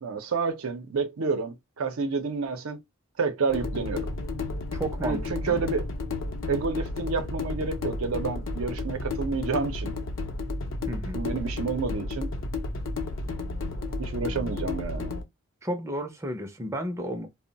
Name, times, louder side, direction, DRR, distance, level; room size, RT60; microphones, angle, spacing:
voice 1, 0.0-2.8 3.2-4.1 5.0-5.9 6.5-9.9 11.1-12.3 14.0-15.1, right 4 dB, 90° right, 0.6 m, -29 dB
sound 1, 3.5-15.2, left 2 dB, 65° left, 0.6 m, -32 dB
voice 2, 4.7-5.6 10.9-11.2 15.6-17.3, right 1 dB, 15° right, 0.4 m, -33 dB
2.2 x 2.1 x 3.8 m
head